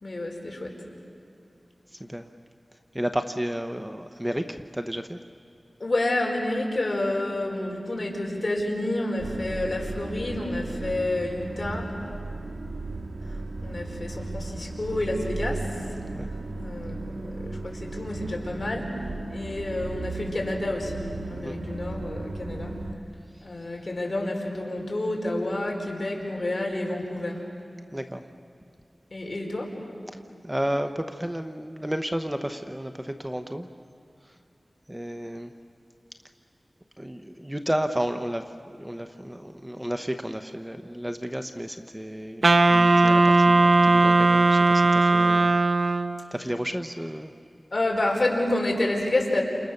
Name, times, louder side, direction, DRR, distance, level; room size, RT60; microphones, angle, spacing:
voice 1, 0.0-0.7 5.8-11.9 13.6-15.6 16.6-18.9 19.3-21.0 21.3-22.7 23.4-27.4 29.1-29.7 47.7-49.4, left 1 dB, 45° left, 0 dB, 4.7 m, -29 dB
voice 2, 2.9-5.2 16.1-16.3 21.4-21.6 27.9-28.2 30.4-33.7 34.9-35.5 37.0-38.4 38.8-45.9 46.3-47.3, equal, 10° right, 7 dB, 0.8 m, -32 dB
sound 1, 9.2-22.9, right 2 dB, 80° right, 2.0 m, -35 dB
Wind instrument woodwind instrument, 42.4-46.3, right 2 dB, 60° right, 0.9 m, -18 dB
29.5 x 28.0 x 6.6 m, 2.5 s
wide cardioid pair, 80°, 0 cm